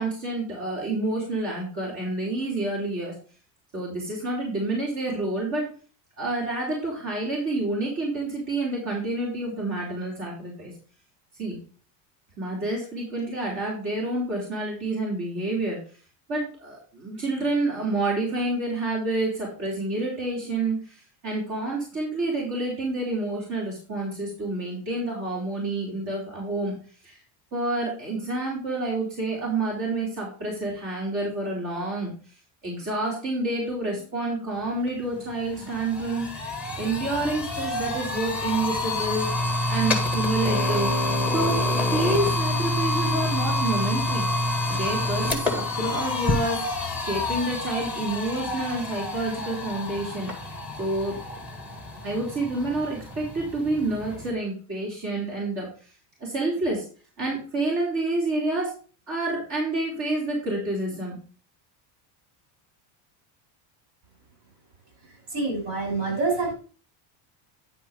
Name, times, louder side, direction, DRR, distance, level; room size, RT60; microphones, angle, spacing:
voice 1, 0.0-3.1 3.7-5.7 6.2-10.7 11.4-11.6 12.4-15.8 16.3-26.8 27.0-27.2 27.5-32.1 32.6-36.3 36.8-39.3 39.7-40.9 41.3-41.7 41.9-44.3 44.7-46.6 47.1-50.3 50.8-51.2 52.0-55.7 56.2-56.8 57.2-58.7 59.1-61.2, right 2 dB, 40° right, -5 dB, 3.8 m, -28 dB
sound 1, 34.9-35.0 35.3-54.3, left 1 dB, 5° right, 1.7 m, -28 dB
voice 2, 65.3-66.5, right 3 dB, 70° right, 2 dB, 5.5 m, -26 dB
10.0 x 4.8 x 5.1 m, 0.39 s
cardioid pair, 160°, 44 cm